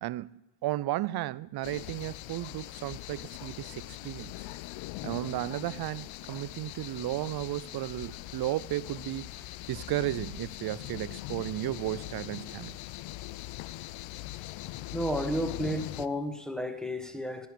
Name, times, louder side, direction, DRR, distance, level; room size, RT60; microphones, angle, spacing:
voice 1, 0.0-4.3 5.0-9.3 9.7-12.8, right 15 dB, 55° right, 0.5 m, -34 dB
sound 1, 1.6-16.1, left 17 dB, 85° left, 0.6 m, -41 dB
voice 2, 14.9-17.5, equal, ahead, 1.4 m, -32 dB
10.5 x 10.0 x 9.8 m
cardioid pair, 105°, 46 cm